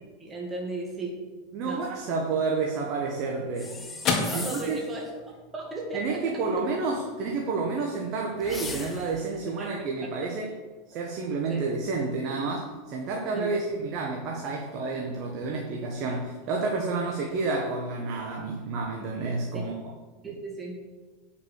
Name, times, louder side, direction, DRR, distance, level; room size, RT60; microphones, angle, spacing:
voice 1, 0.2-1.1 1.6-1.8 4.2-5.0 5.5-6.2 9.6-9.7 11.5-11.6 13.3-13.5 19.5-19.7 20.2-20.7, right 2 dB, 20° right, -2 dB, 2.1 m, -35 dB
voice 2, 1.5-3.9 4.3-4.8 5.9-10.6 10.9-19.7, right 4 dB, 50° right, 0 dB, 1.4 m, -30 dB
sound 1, 2.8-11.3, left 4 dB, 40° left, 2.0 m, -38 dB
sound 2, 3.6-4.9 8.4-9.3, left 3 dB, 15° left, 1.3 m, -38 dB
8.9 x 5.9 x 6.6 m, 1.4 s
hypercardioid pair, 110°, 0 cm